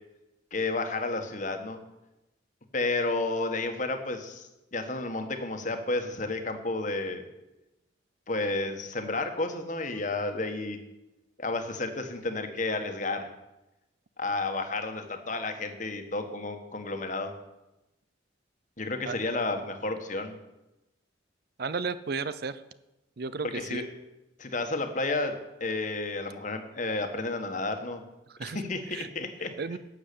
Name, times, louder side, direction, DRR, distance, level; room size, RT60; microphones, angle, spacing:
voice 1, 0.5-1.8 2.7-7.2 8.3-10.8 11.4-13.3 14.2-17.3 18.8-20.4 23.5-23.8 24.4-28.0 28.4-29.8, left 2 dB, 40° left, 6 dB, 1.5 m, -31 dB
voice 2, 21.6-22.6 23.2-23.8 28.4-28.6 28.9-29.1 29.6-29.8, right 4 dB, 55° right, 15 dB, 0.5 m, -33 dB
12.0 x 7.4 x 8.5 m, 0.97 s
head